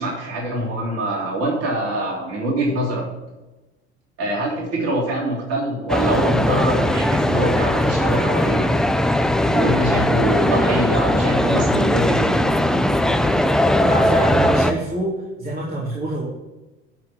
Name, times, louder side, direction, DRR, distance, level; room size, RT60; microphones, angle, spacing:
voice 1, 0.0-3.1 4.2-8.7 9.5-12.4, right 1 dB, 45° right, -3 dB, 3.4 m, -24 dB
sound 1, 5.9-14.7, left 1 dB, ahead, 0.5 m, -19 dB
voice 2, 13.8-15.1 15.4-16.2, right 1 dB, 25° right, -6 dB, 3.3 m, -26 dB
11.5 x 4.7 x 7.2 m, 1.1 s
hypercardioid pair, 70°, 33 cm